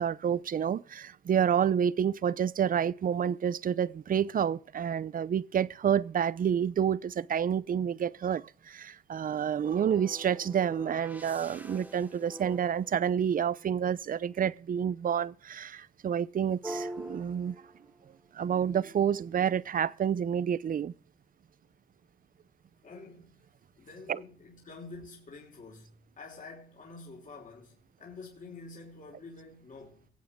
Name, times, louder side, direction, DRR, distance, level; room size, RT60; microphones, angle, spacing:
voice 1, 0.0-17.6 18.3-20.9 24.1-24.2, right 8 dB, 45° right, 0.7 m, -29 dB
sound 1, 9.6-13.8 16.6-18.1 18.7-20.4, right 1 dB, 10° right, 1.8 m, -45 dB
voice 2, 22.8-23.5 23.8-30.1, left 3 dB, 40° left, 5.0 m, -48 dB
24.0 x 8.5 x 3.7 m
cardioid pair, 90°, 20 cm